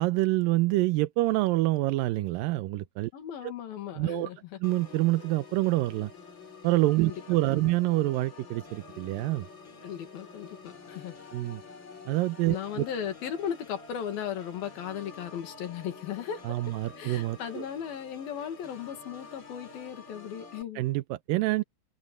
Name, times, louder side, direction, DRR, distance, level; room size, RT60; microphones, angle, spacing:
voice 1, 0.0-3.1 3.4-3.5 4.0-4.3 4.6-6.1 6.6-9.5 11.3-11.6 12.1-12.9 16.4-17.7 20.8-21.6, right 18 dB, 90° right, 2.4 m, -27 dB
voice 2, 3.1-4.6 7.0-7.2 9.8-11.2 12.5-20.8, left 9 dB, 90° left, 4.0 m, -37 dB
Organ, 4.6-20.6, left 4 dB, 35° left, 3.4 m, -48 dB
omnidirectional pair, 4.1 m